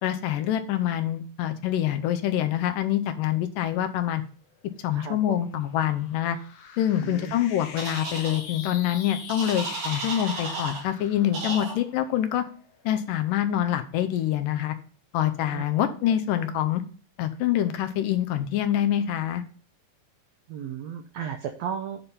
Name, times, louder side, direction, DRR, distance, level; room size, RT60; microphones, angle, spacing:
voice 1, 0.0-4.2 4.8-6.4 6.8-12.5 12.9-14.8 15.1-16.8 17.2-19.4, left 11 dB, 80° left, 9 dB, 2.2 m, -25 dB
sound 1, 4.5-13.2, left 6 dB, 65° left, 1.8 m, -44 dB
voice 2, 4.9-5.4 7.0-7.3 15.5-15.6 20.5-22.0, right 8 dB, 85° right, 6 dB, 1.5 m, -34 dB
sound 2, 7.8-8.4 9.3-10.8 11.3-11.7, right 3 dB, 70° right, 4.1 m, -33 dB
8.8 x 4.3 x 5.3 m, 0.42 s
omnidirectional pair, 4.0 m